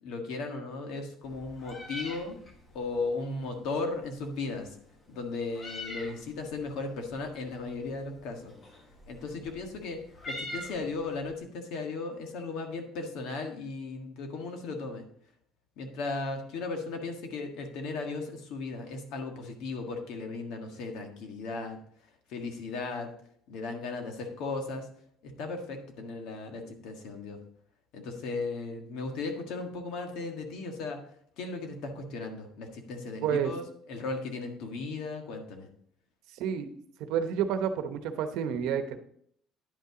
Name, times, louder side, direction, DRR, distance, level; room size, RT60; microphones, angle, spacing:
voice 1, 0.0-2.4 2.7-4.8 5.1-8.5 9.1-10.0 10.3-15.0 15.8-21.8 22.3-23.1 23.5-24.9 25.2-27.4 27.9-31.0 31.4-33.6 33.9-35.7, left 3 dB, 70° left, 4 dB, 1.6 m, -36 dB
Meow, 1.2-11.3, left 1 dB, 25° left, 1.4 m, -45 dB
voice 2, 33.2-33.5 36.4-36.7 37.0-39.0, right 8 dB, 75° right, 9 dB, 0.9 m, -29 dB
10.0 x 5.6 x 3.8 m, 0.65 s
cardioid pair, 155°, 0 cm